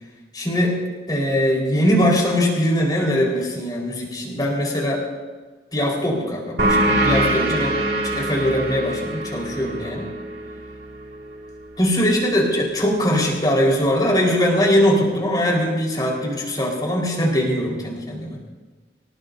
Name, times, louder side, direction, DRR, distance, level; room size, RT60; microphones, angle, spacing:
voice 1, 0.3-0.8 1.1-5.0 5.7-10.1 11.8-18.4, equal, 25° left, -2 dB, 4.5 m, -21 dB
sound 1, 6.6-11.8, right 1 dB, 65° right, 2.3 m, -24 dB
26.0 x 18.5 x 2.7 m, 1.3 s
head